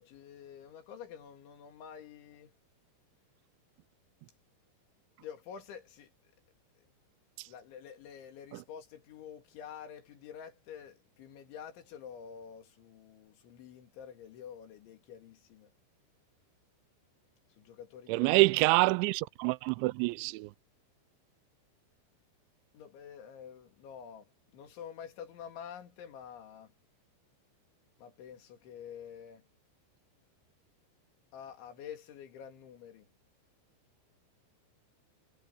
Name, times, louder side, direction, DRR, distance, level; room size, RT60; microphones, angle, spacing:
voice 1, 0.0-2.5 5.2-6.1 6.8-6.9 7.5-15.7 17.6-18.4 22.7-26.7 28.0-29.5 31.3-33.1, left 8 dB, 85° left, 5.1 m, -48 dB
voice 2, 18.1-20.5, right 21 dB, 90° right, 2.9 m, -27 dB
omnidirectional pair, 5.2 m